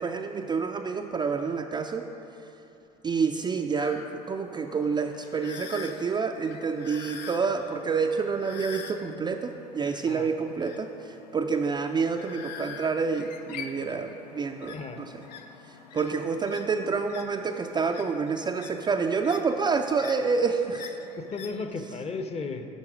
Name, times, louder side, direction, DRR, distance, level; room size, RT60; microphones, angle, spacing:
voice 1, 0.0-2.1 3.0-15.1 15.9-20.9, right 5 dB, 20° right, 4 dB, 0.4 m, -28 dB
sound 1, 3.8-21.6, left 6 dB, 80° left, 0.6 m, -45 dB
voice 2, 21.2-22.7, left 4 dB, 30° left, 7 dB, 0.7 m, -34 dB
8.3 x 5.9 x 4.9 m, 3.0 s
hypercardioid pair, 75°, 21 cm